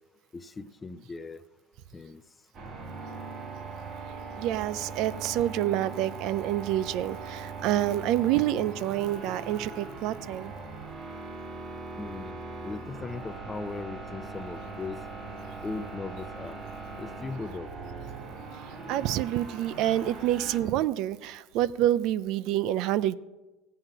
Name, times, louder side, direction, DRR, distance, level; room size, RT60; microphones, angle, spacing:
voice 1, 0.3-1.4 1.9-2.2 12.0-15.0 15.6-16.6 17.0-17.7, left 4 dB, 20° left, 13 dB, 0.6 m, -38 dB
sound 1, 2.5-20.6, right 4 dB, 35° right, 3.7 m, -40 dB
voice 2, 4.4-10.5 18.9-23.1, right 13 dB, 60° right, 17 dB, 0.5 m, -27 dB
16.0 x 5.7 x 9.1 m, 1.1 s
supercardioid pair, 125°, 0 cm